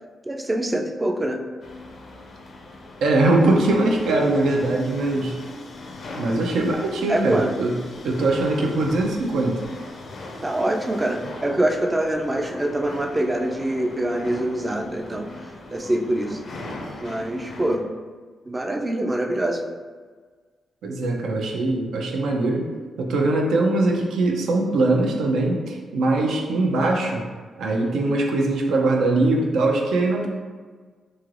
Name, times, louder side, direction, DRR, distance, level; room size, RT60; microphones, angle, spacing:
voice 1, 0.2-1.4 7.1-7.5 10.4-15.3 15.7-16.4 17.0-17.9 18.5-19.6, right 1 dB, 20° right, 3 dB, 0.3 m, -24 dB
sound 1, 1.6-17.8, left 2 dB, 55° left, 0.4 m, -39 dB
voice 2, 3.0-5.4 6.2-7.7 8.0-9.6 20.8-22.7 23.0-27.2 27.6-30.3, right 2 dB, 85° right, 1 dB, 0.4 m, -21 dB
3.1 x 2.8 x 2.4 m, 1.5 s
cardioid pair, 105°, 0 cm